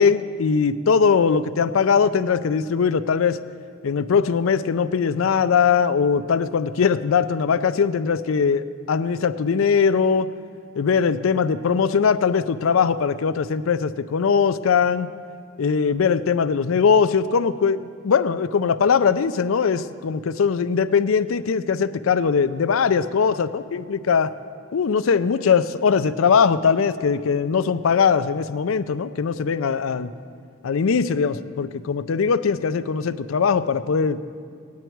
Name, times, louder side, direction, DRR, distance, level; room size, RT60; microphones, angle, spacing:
voice 1, 0.0-3.4 3.8-10.3 10.8-15.1 15.6-24.3 24.7-30.1 30.6-34.2, left 6 dB, 85° left, 14 dB, 0.4 m, -20 dB
17.0 x 9.6 x 4.5 m, 2.2 s
head